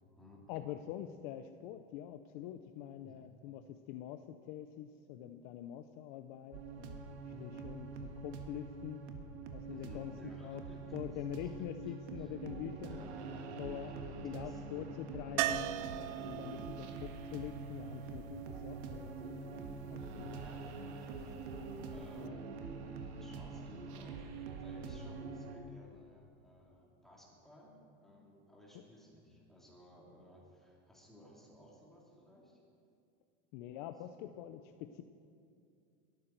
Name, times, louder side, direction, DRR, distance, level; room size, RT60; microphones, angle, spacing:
voice 1, 0.5-7.0 7.4-9.1 9.5-10.1 10.4-10.6 10.9-13.1 13.6-15.7 16.3-20.8 22.1-22.4 28.7-28.8 33.5-35.0, left 11 dB, 45° left, 8 dB, 0.6 m, -45 dB
sound 1, 6.5-25.6, right 4 dB, 85° right, 1.7 m, -45 dB
voice 2, 9.7-11.6 11.8-12.3 12.7-13.3 13.9-15.0 16.4-16.8 20.3-21.4 21.9-22.4 23.2-32.6 34.1-34.4, left 1 dB, ahead, -5 dB, 2.7 m, -58 dB
sound 2, 15.4-19.3 21.9-22.0 22.3-22.4, right 13 dB, 40° right, 0.5 m, -39 dB
23.0 x 13.0 x 4.5 m, 2.4 s
supercardioid pair, 170°, 33 cm